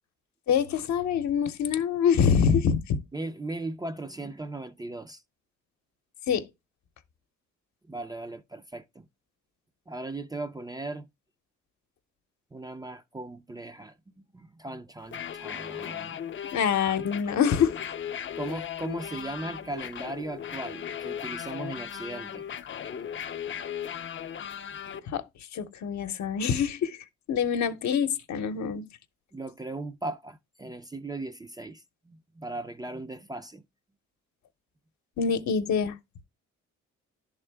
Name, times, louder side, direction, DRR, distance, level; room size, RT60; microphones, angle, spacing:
voice 1, 0.5-3.0 6.3-6.5 16.5-17.8 25.1-25.2 25.5-28.9 35.2-36.0, left 7 dB, 65° left, 0.8 m, -25 dB
voice 2, 3.1-5.2 7.9-9.1 9.9-11.1 12.5-16.2 18.4-22.5 29.3-33.6, right 2 dB, 15° right, 0.4 m, -38 dB
sound 1, 15.0-25.0, left 9 dB, 40° left, 0.5 m, -37 dB
10.5 x 3.6 x 3.4 m
cardioid pair, 90°, 30 cm